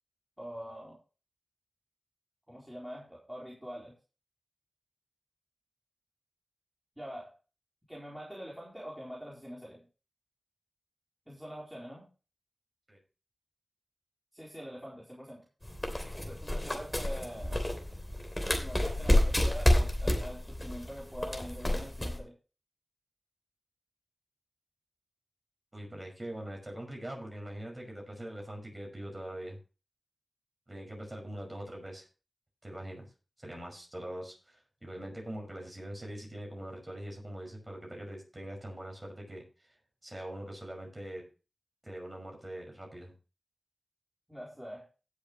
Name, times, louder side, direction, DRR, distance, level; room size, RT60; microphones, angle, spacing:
voice 1, 0.4-1.0 2.5-3.9 7.0-7.3 7.9-9.9 11.3-12.0 14.3-15.4 16.3-17.6 18.6-22.3 44.3-44.9, equal, 10° right, -5 dB, 4.0 m, -44 dB
sound 1, 15.6-22.2, left 1 dB, 20° left, 2.9 m, -29 dB
voice 2, 25.7-29.6 30.7-32.0 32.6-33.1 33.4-39.4 40.0-41.2 41.8-43.1, right 1 dB, 25° right, 1 dB, 5.7 m, -42 dB
17.0 x 7.3 x 3.1 m, 0.34 s
wide cardioid pair, 50°, 0 cm